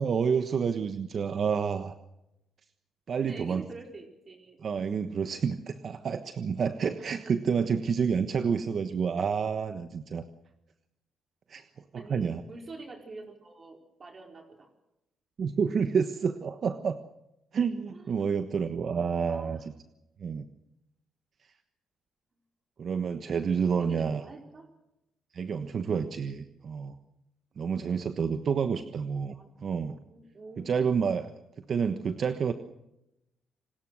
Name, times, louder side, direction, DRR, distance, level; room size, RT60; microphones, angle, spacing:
voice 1, 0.0-2.0 3.1-3.6 4.6-10.2 11.5-11.6 11.9-12.4 15.4-17.0 17.5-19.6 20.2-20.5 22.8-24.2 25.3-26.9 27.6-30.0 30.6-31.3 31.7-32.5, right 6 dB, 50° right, 9 dB, 1.3 m, -29 dB
voice 2, 3.2-4.7 7.2-7.5 8.4-8.6 12.0-14.7 17.9-18.3 19.3-19.6 23.8-24.7 27.7-28.2 29.3-30.9, right 3 dB, 35° right, 2 dB, 4.5 m, -47 dB
29.0 x 19.5 x 6.4 m, 0.88 s
cardioid pair, 90°, 0 cm